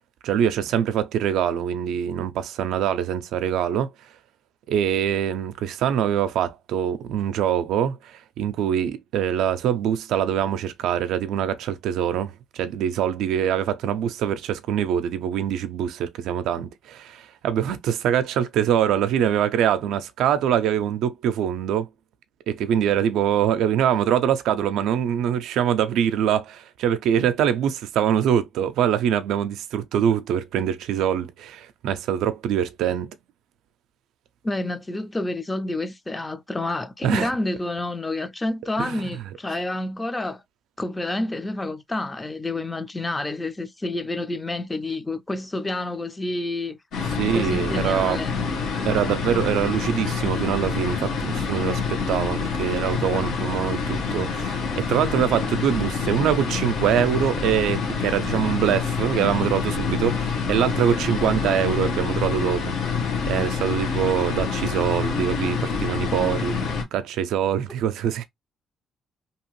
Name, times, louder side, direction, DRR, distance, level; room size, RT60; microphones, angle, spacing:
voice 1, 0.2-3.9 4.7-21.9 22.5-33.2 37.0-37.3 38.8-39.2 47.2-48.2 48.8-62.7 63.3-68.2, right 9 dB, 85° right, 0.4 m, -24 dB
voice 2, 34.4-40.4 40.8-46.8 47.3-48.4, left 2 dB, 20° left, 0.5 m, -29 dB
computer far, 46.9-66.8, left 5 dB, 80° left, 1.0 m, -27 dB
2.8 x 2.5 x 3.0 m
cardioid pair, 90°, 0 cm